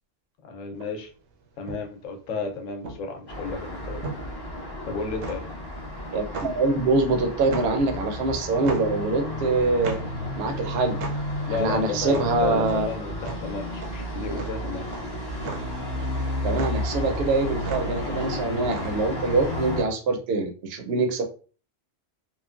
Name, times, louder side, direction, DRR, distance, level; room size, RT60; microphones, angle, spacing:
voice 1, 0.4-1.1 1.6-4.0 4.8-5.5 11.5-14.8, left 4 dB, 90° left, 4 dB, 1.0 m, -33 dB
sound 1, 0.8-19.3, right 3 dB, 85° right, 1.0 m, -38 dB
Traffic noise roadway noise, 3.3-19.8, left 1 dB, 30° left, 0.5 m, -32 dB
voice 2, 6.1-10.0 10.3-11.0 11.5-12.9 16.4-21.2, right 3 dB, 65° right, 5 dB, 0.7 m, -24 dB
3.1 x 2.1 x 2.3 m, 0.37 s
omnidirectional pair, 1.3 m